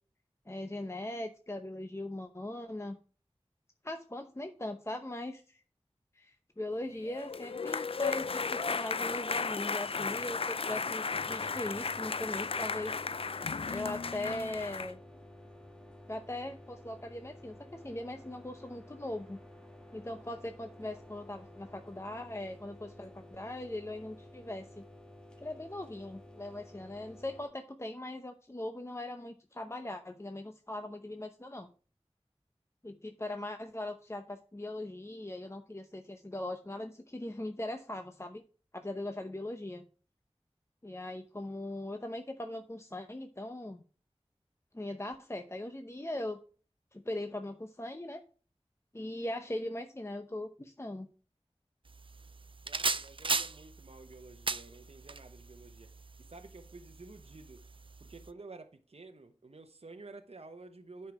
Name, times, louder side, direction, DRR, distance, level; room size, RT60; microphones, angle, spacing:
voice 1, 0.5-3.0 3.8-5.6 6.1-13.0 13.7-15.0 16.1-19.4 19.9-24.8 25.4-31.7 32.8-38.4 38.7-39.8 40.8-43.8 44.7-46.4 46.9-48.2 48.9-51.1, left 1 dB, 25° left, 0.7 m, -40 dB
sound 1, 7.0-14.9, left 5 dB, 60° left, 0.4 m, -35 dB
sound 2, 11.1-27.5, left 1 dB, 10° left, 1.6 m, -53 dB
sound 3, 51.9-58.3, right 4 dB, 55° right, 0.5 m, -38 dB
voice 2, 52.6-55.9 56.3-57.6 58.0-61.1, right 3 dB, 70° right, 0.8 m, -51 dB
9.5 x 5.6 x 4.8 m
wide cardioid pair, 50°, 11 cm